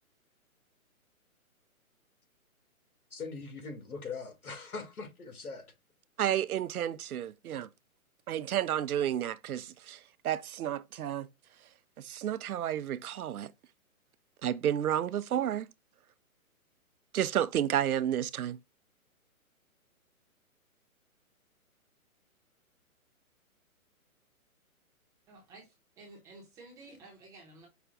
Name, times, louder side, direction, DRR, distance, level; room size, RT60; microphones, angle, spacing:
voice 1, 3.1-5.7, left 4 dB, 80° left, 2.1 m, -41 dB
voice 2, 6.2-7.7 8.3-10.0 10.2-11.3 12.0-13.5 14.4-15.7 17.1-18.6, right 10 dB, 80° right, 0.6 m, -31 dB
voice 3, 25.3-27.7, right 2 dB, 5° right, 0.7 m, -53 dB
5.7 x 2.3 x 3.8 m
hypercardioid pair, 150°, 43 cm